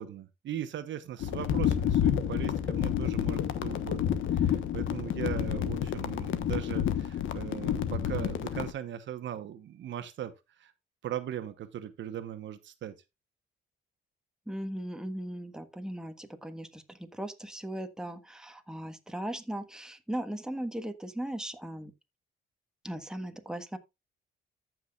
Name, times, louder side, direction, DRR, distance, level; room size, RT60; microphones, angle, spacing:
voice 1, 0.0-10.3 10.6-10.7 11.0-12.9, right 10 dB, 70° right, 1.1 m, -39 dB
sound 1, 1.2-8.7, left 9 dB, 80° left, 1.2 m, -29 dB
voice 2, 14.5-21.9 22.8-23.8, right 1 dB, 5° right, 1.4 m, -38 dB
14.0 x 6.1 x 2.4 m
cardioid pair, 90°, 20 cm